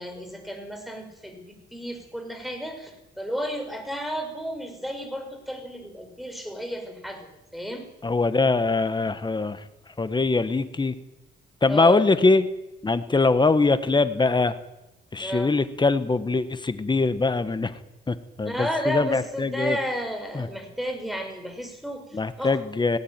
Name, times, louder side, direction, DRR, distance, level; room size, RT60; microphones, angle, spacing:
voice 1, 0.0-7.3 7.5-7.8 11.7-12.1 15.2-15.5 18.4-22.6, equal, ahead, 5 dB, 5.8 m, -32 dB
voice 2, 8.0-9.6 10.0-10.9 11.6-12.4 12.8-14.5 15.1-17.8 18.1-19.8 20.3-20.5 22.1-23.0, left 3 dB, 20° left, 12 dB, 1.5 m, -22 dB
18.0 x 17.0 x 9.2 m, 0.97 s
cardioid pair, 90°, 20 cm